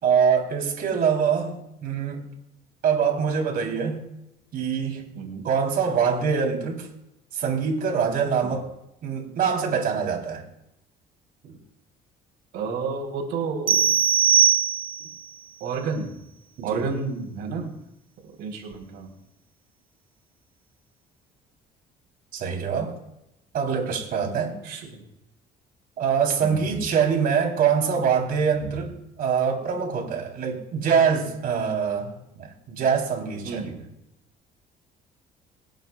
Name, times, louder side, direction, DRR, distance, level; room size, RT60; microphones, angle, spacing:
voice 1, 0.0-2.3 2.8-4.0 4.5-5.1 5.4-6.9 7.3-8.7 9.0-10.4 11.4-11.5 16.6-16.8 22.3-23.0 23.5-24.6 26.0-28.9 29.2-33.8, right 6 dB, 60° right, 1 dB, 3.6 m, -24 dB
voice 2, 5.1-5.5 8.4-8.5 12.5-13.9 15.6-16.1 16.6-17.7 18.4-19.1 24.6-25.0 26.4-26.6 33.4-33.7, right 5 dB, 85° right, 0 dB, 3.9 m, -30 dB
sound 1, 13.7-15.2, right 8 dB, 30° right, 0.4 m, -20 dB
26.5 x 9.1 x 2.4 m, 0.85 s
cardioid pair, 110°, 17 cm